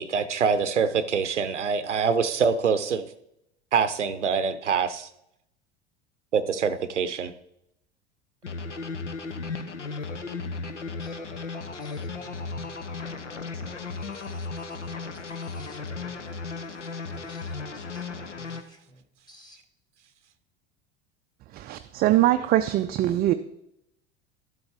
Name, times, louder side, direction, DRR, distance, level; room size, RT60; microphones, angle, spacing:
voice 1, 0.0-3.1 3.7-5.1 6.3-7.3, right 6 dB, 85° right, 0.6 m, -25 dB
sound 1, 8.4-18.6, left 4 dB, 85° left, 0.8 m, -35 dB
voice 2, 11.0-11.3 11.6-12.8 13.8-14.8 15.1-16.3 17.1-19.6, equal, 10° left, 1.7 m, -55 dB
voice 3, 21.5-23.3, right 14 dB, 25° right, 0.4 m, -22 dB
12.0 x 7.9 x 3.5 m
figure-of-eight pair, 75°, 35 cm